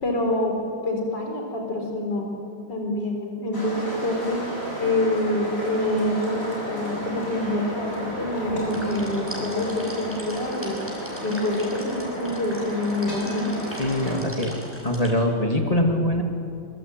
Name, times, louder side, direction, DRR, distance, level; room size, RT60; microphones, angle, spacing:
voice 1, 0.0-2.3 2.7-4.4 4.8-10.8 11.2-13.6, left 1 dB, 60° left, 1 dB, 4.9 m, -26 dB
sound 1, 3.5-14.2, equal, 45° left, 8.6 m, -33 dB
sound 2, 8.7-15.1, equal, 5° right, 5.8 m, -41 dB
voice 2, 13.8-14.5 14.8-16.2, left 1 dB, 20° left, 2 dB, 2.7 m, -23 dB
26.0 x 24.5 x 9.2 m, 2.6 s
omnidirectional pair, 2.1 m